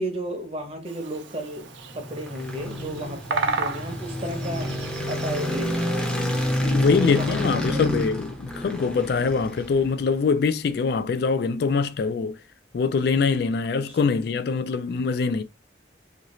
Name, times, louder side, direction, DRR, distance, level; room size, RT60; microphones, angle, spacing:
voice 1, 0.0-4.8 5.1-5.8 6.6-7.9, right 1 dB, 30° right, 0.7 m, -33 dB
Bird vocalization bird call bird song, 0.9-5.9, right 4 dB, 85° right, 0.5 m, -33 dB
sound 1, 1.7-10.1, left 1 dB, 5° left, 0.6 m, -29 dB
voice 2, 6.7-12.4 12.7-15.4, left 5 dB, 60° left, 0.3 m, -23 dB
2.8 x 2.6 x 3.0 m
head